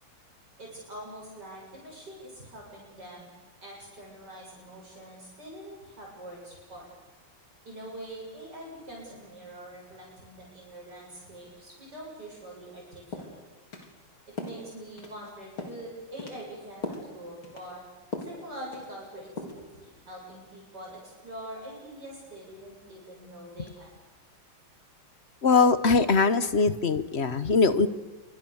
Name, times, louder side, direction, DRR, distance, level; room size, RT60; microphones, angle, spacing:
voice 1, 0.6-3.3 3.6-6.9 7.6-13.4 14.3-17.8 18.2-23.9, right 1 dB, 50° right, -3 dB, 8.5 m, -44 dB
sound 1, 12.6-12.8 13.1-13.3 13.7-13.9 14.4-14.6 15.0-15.3 15.6-15.8 16.2-16.4 16.8-17.1 17.4-17.7 18.1-18.4 18.7-19.1 19.4-19.6, left 3 dB, 75° left, 4.6 m, -38 dB
voice 2, 25.4-27.9, left 4 dB, 40° left, 13 dB, 1.0 m, -22 dB
27.5 x 24.5 x 7.2 m, 1.2 s
omnidirectional pair, 2.3 m